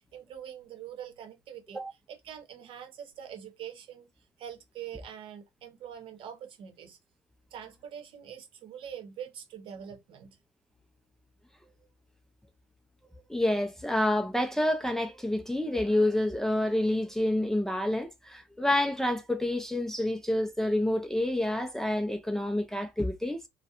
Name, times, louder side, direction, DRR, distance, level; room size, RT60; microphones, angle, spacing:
voice 1, 0.0-1.8 2.1-4.1 4.4-7.0 7.5-10.4, right 9 dB, 60° right, 0.8 m, -44 dB
voice 2, 13.3-23.4, left 1 dB, 5° left, 0.4 m, -28 dB
2.3 x 2.1 x 2.8 m
hypercardioid pair, 70°, 10 cm